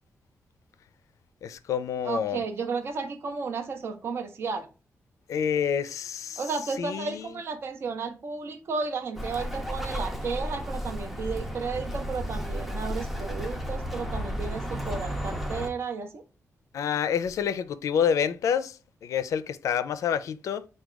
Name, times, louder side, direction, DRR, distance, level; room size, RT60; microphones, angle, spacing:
voice 1, 1.4-2.4 5.3-6.4 6.8-7.4 16.7-20.7, left 8 dB, 85° left, 0.4 m, -28 dB
voice 2, 2.0-4.7 6.4-16.2, right 4 dB, 50° right, 0.5 m, -33 dB
Bird, 9.2-15.7, equal, 5° right, 0.5 m, -33 dB
4.5 x 2.2 x 4.7 m
wide cardioid pair, 175°, 5 cm